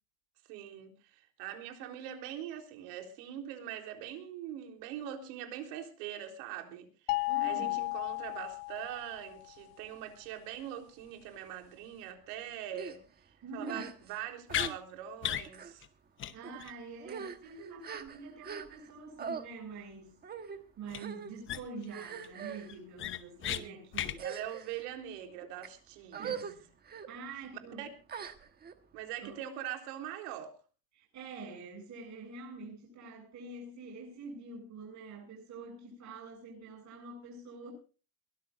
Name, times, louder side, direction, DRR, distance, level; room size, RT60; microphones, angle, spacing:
voice 1, 0.5-15.9 23.5-26.4 27.8-27.9 28.9-30.6, right 10 dB, 80° right, 3.9 m, -43 dB
sound 1, 7.1-9.3, left 25 dB, 60° left, 0.6 m, -34 dB
voice 2, 7.3-7.8 13.4-13.9 16.3-24.2 26.2-26.7 27.1-27.9 29.2-29.4 30.9-37.7, right 3 dB, 35° right, 8.0 m, -46 dB
sound 2, 12.7-13.0 13.6-14.2 14.5-14.8 15.5-15.7 16.4-16.6 17.0-18.9 19.2-19.4 20.2-20.6 21.0-21.3 21.9-22.7 23.4-23.6 24.1-24.8 25.4-25.7 26.1-26.5 26.9-27.1 28.1-28.7, right 7 dB, 20° right, 1.3 m, -42 dB
sound 3, 14.5-14.7 15.2-15.5 15.8-15.9 16.2-16.3 16.6-16.7 20.9-21.0 21.5-21.8 22.2-22.3 22.7-23.6 23.9-24.2, left 11 dB, 25° left, 0.8 m, -34 dB
22.5 x 17.0 x 2.6 m
cardioid pair, 165°, 47 cm